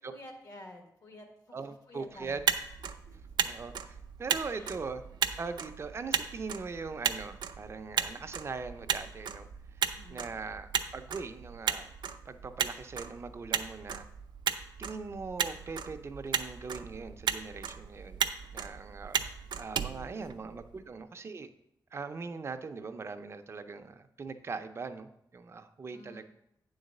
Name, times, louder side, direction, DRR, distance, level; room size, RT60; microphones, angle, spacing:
voice 1, 0.0-1.6 1.9-2.4 3.1-3.2 4.5-4.8 9.9-10.4 19.7-21.0 25.9-26.2, left 1 dB, 55° left, 3 dB, 1.4 m, -51 dB
voice 2, 1.5-2.4 3.4-5.0 5.4-9.5 9.7-9.8 10.1-11.9 12.3-14.1 14.8-19.2 19.6-21.5 21.9-26.2, right 4 dB, 35° right, 8 dB, 0.5 m, -41 dB
Motor vehicle (road), 2.2-20.8, right 7 dB, 85° right, 0.5 m, -35 dB
8.9 x 4.0 x 6.5 m, 0.77 s
wide cardioid pair, 175°, 7 cm